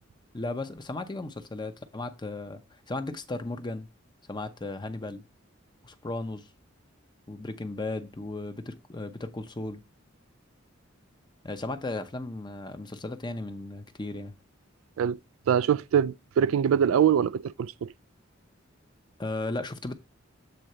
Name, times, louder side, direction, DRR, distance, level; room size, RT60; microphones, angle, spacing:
voice 1, 0.3-3.9 4.3-5.2 5.8-6.5 7.3-9.8 11.4-14.3 19.2-19.9, left 2 dB, 20° left, 0.7 m, -35 dB
voice 2, 15.5-17.9, right 8 dB, 85° right, 0.3 m, -23 dB
8.0 x 3.8 x 4.3 m
head